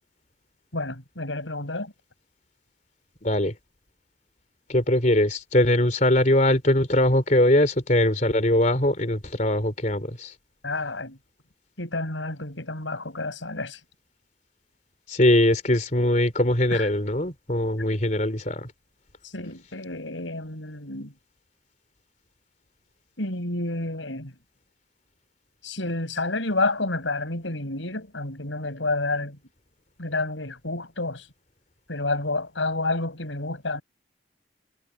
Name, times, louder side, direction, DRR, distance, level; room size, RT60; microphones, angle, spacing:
voice 1, 0.7-1.9 10.6-11.2 11.8-13.8 16.7-16.9 19.2-21.1 23.2-24.3 25.6-29.4 30.0-31.3 31.9-33.8, left 2 dB, 85° left, 6.4 m, -29 dB
voice 2, 3.2-3.5 4.7-10.3 15.1-18.7, left 1 dB, 40° left, 3.4 m, -21 dB
head